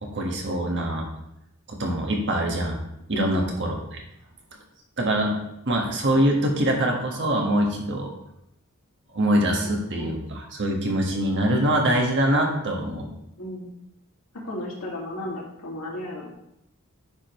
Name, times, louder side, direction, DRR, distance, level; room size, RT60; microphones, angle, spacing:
voice 1, 0.0-1.1 1.7-2.8 3.1-4.0 5.0-5.3 5.6-8.1 9.1-13.1, right 1 dB, 55° right, 1 dB, 1.5 m, -24 dB
voice 2, 3.1-3.5 9.6-10.2 13.4-13.7 14.4-16.3, left 1 dB, 85° left, -3 dB, 2.1 m, -34 dB
9.5 x 5.1 x 3.1 m, 0.81 s
head